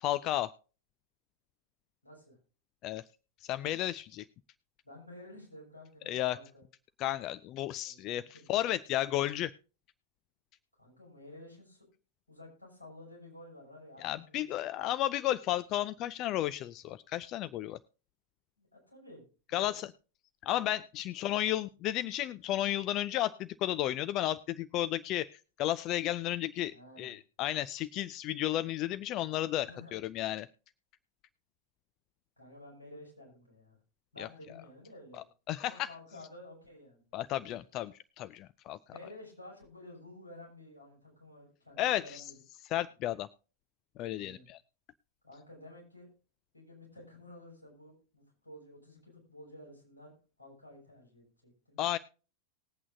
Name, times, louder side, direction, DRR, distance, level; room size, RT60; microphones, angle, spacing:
voice 1, 0.0-0.5 2.8-3.0 3.5-4.2 6.1-6.4 7.0-9.5 14.0-17.8 19.5-19.9 20.4-25.3 25.6-30.5 34.2-34.3 35.5-35.9 37.1-38.8 41.8-42.2 42.7-43.3 44.0-44.6 51.8-52.0, left 13 dB, 35° left, 15 dB, 0.4 m, -33 dB
voice 2, 2.0-2.4 4.8-6.6 7.8-8.5 10.8-11.9 12.3-14.4 14.7-14.9 18.6-19.8 21.1-21.4 26.6-27.2 29.6-29.9 32.4-33.8 34.1-35.2 35.6-37.0 38.9-42.4 44.1-44.5 45.2-46.1 46.5-51.8, left 1 dB, 85° left, -3 dB, 6.8 m, -52 dB
20.0 x 8.5 x 2.6 m, 0.35 s
figure-of-eight pair, 90°, 0 cm